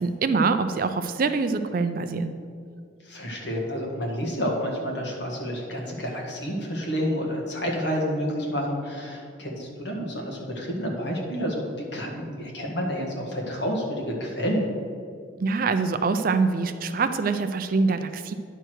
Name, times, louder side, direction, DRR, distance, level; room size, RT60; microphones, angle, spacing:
voice 1, 0.0-2.3 15.4-18.3, right 4 dB, 45° right, 10 dB, 0.4 m, -24 dB
voice 2, 3.0-14.7, equal, 55° left, -1 dB, 1.7 m, -29 dB
10.0 x 4.6 x 6.3 m, 2.2 s
head